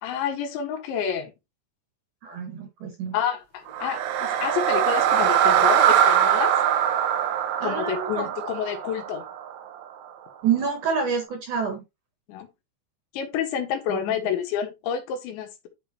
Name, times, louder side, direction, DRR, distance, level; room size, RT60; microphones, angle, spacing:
voice 1, 0.0-1.3 3.1-6.6 7.6-9.2 12.3-12.5 13.1-15.7, left 8 dB, 80° left, 3.8 m, -29 dB
voice 2, 2.2-3.1 7.6-8.2 10.4-11.8 13.9-14.0, right 6 dB, 55° right, 2.6 m, -27 dB
sound 1, 3.7-9.8, right 10 dB, 90° right, 3.4 m, -22 dB
10.5 x 5.4 x 2.9 m
omnidirectional pair, 5.2 m